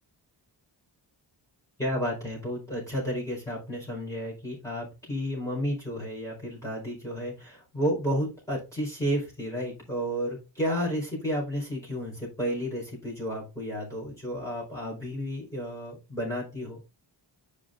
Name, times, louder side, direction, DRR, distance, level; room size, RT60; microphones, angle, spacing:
voice 1, 1.8-16.8, equal, 5° left, -5 dB, 4.7 m, -32 dB
11.0 x 5.6 x 2.5 m, 0.28 s
wide cardioid pair, 135°, 45 cm